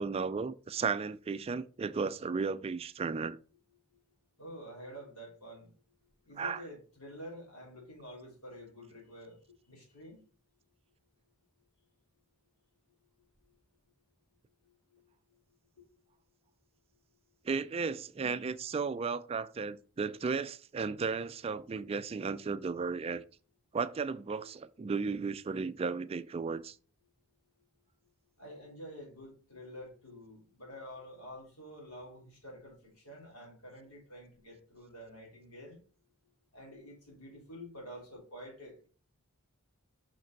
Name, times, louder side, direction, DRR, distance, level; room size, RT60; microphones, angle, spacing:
voice 1, 0.0-3.4 6.4-6.6 17.4-23.2 23.7-26.7, right 5 dB, 25° right, 0.3 m, -34 dB
voice 2, 4.4-5.7 6.3-9.4 9.7-10.2 15.8-15.9 28.4-35.8 36.5-38.9, equal, 80° left, 4.0 m, -49 dB
5.9 x 4.9 x 4.6 m
head